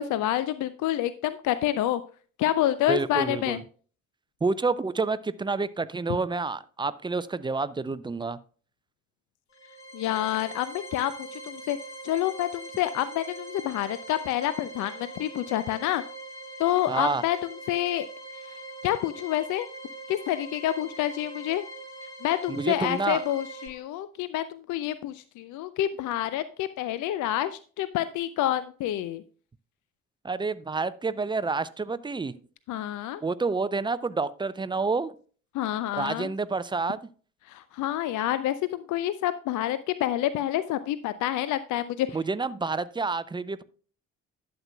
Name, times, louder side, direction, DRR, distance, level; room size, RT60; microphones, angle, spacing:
voice 1, 0.0-2.0 2.4-3.6 9.9-11.8 12.0-16.0 16.6-17.4 17.7-18.1 18.5-18.6 18.8-19.7 20.1-21.6 22.2-29.2 32.7-33.2 35.5-36.3 37.5-42.1, left 13 dB, 50° left, 0.5 m, -28 dB
voice 2, 2.9-3.6 4.4-8.4 16.9-17.2 22.5-23.2 30.2-32.3 33.2-35.1 35.9-37.0 42.1-43.6, right 4 dB, 10° right, 0.5 m, -28 dB
sound 1, 9.5-23.7, right 2 dB, 30° left, 2.3 m, -42 dB
11.5 x 7.7 x 2.2 m
figure-of-eight pair, 45°, 41 cm